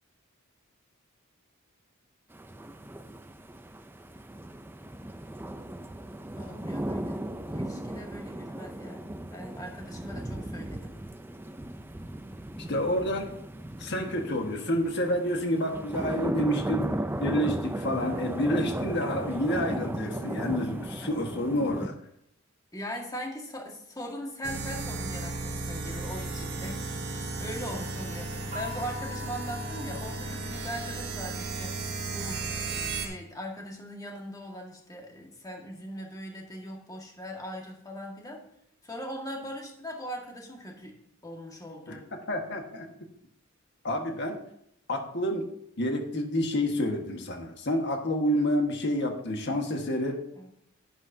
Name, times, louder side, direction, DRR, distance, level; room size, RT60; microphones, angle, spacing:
sound 1, 2.3-21.9, right 1 dB, 10° right, 0.4 m, -36 dB
voice 1, 6.4-7.2 7.5-11.0 22.7-38.4 38.8-41.0 41.2-42.0 50.3-50.5, equal, 15° left, 0 dB, 1.8 m, -40 dB
voice 2, 12.6-13.3 13.8-16.9 17.2-22.0 41.9-42.0 42.3-42.8 43.8-44.4 44.9-45.5 45.8-50.2, equal, 55° left, 3 dB, 1.5 m, -29 dB
sound 2, 24.4-33.1, right 3 dB, 55° right, 1.5 m, -35 dB
sound 3, 28.5-31.2, left 4 dB, 35° right, 1.1 m, -44 dB
11.0 x 9.6 x 2.7 m, 0.73 s
head